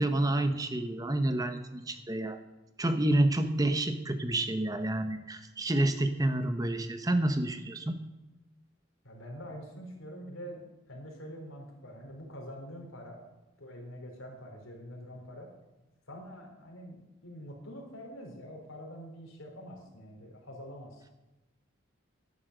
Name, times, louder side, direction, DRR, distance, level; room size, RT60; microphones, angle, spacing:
voice 1, 0.0-2.4 2.8-8.0, right 1 dB, 20° right, 9 dB, 0.9 m, -29 dB
voice 2, 9.0-13.2 13.6-15.5 16.1-21.1, equal, 85° left, 1 dB, 3.9 m, -45 dB
11.5 x 11.5 x 6.6 m, 1.0 s
head